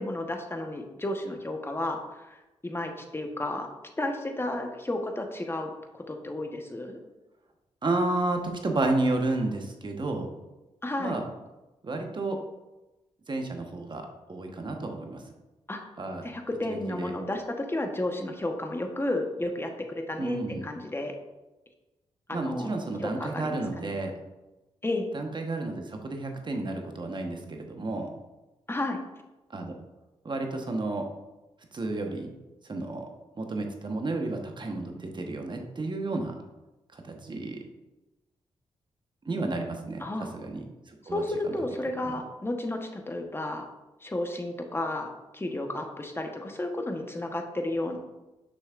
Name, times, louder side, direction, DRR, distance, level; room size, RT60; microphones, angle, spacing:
voice 1, 0.0-3.7 4.0-7.0 10.8-11.2 15.7-15.9 16.2-21.1 22.3-22.7 23.0-23.9 24.8-25.1 28.7-29.0 40.0-40.3 41.1-43.7 44.0-45.1 45.3-48.0, left 1 dB, 20° left, 4 dB, 1.1 m, -32 dB
voice 2, 7.8-10.3 11.0-11.2 11.8-12.4 13.3-15.2 16.0-16.2 16.7-17.1 20.2-20.6 22.3-24.1 25.1-28.1 29.5-29.7 30.2-31.1 31.7-32.3 32.6-33.1 33.3-36.3 36.9-37.6 39.2-41.5 42.1-42.2, right 2 dB, 40° right, 3 dB, 1.1 m, -31 dB
6.3 x 6.2 x 2.5 m, 1.0 s
supercardioid pair, 45°, 12 cm